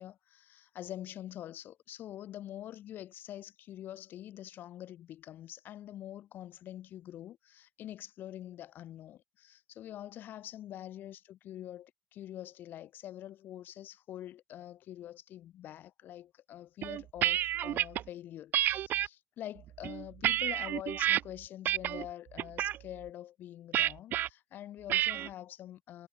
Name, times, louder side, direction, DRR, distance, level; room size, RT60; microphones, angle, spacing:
voice 1, 0.0-26.1, left 12 dB, 75° left, 2.9 m, -45 dB
sound 1, 16.8-18.0 18.5-19.1 19.7-21.2 21.6-22.0 22.4-22.8 23.7-24.3 24.9-25.3, right 12 dB, 75° right, 0.5 m, -29 dB
cardioid pair, 140°, 3 cm